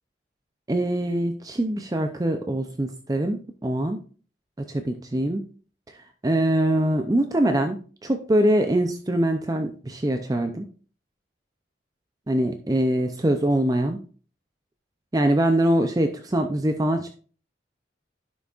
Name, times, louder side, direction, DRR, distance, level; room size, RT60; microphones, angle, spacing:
voice 1, 0.7-4.0 4.6-5.5 6.2-7.8 8.0-10.7 12.3-14.0 15.1-17.1, right 1 dB, 20° right, 6 dB, 0.5 m, -23 dB
11.0 x 6.1 x 2.4 m, 0.40 s
head